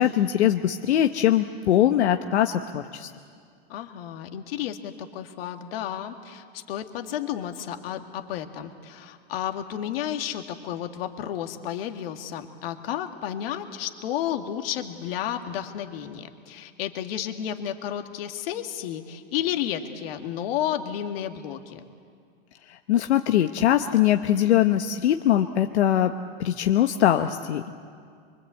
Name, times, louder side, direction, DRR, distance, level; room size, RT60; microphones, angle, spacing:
voice 1, 0.0-3.1 22.7-26.1 26.4-27.7, left 11 dB, 85° left, 6 dB, 1.1 m, -22 dB
voice 2, 3.7-21.8, left 10 dB, 60° left, 6 dB, 2.1 m, -32 dB
24.5 x 24.0 x 8.3 m, 2.2 s
supercardioid pair, 145°, 32 cm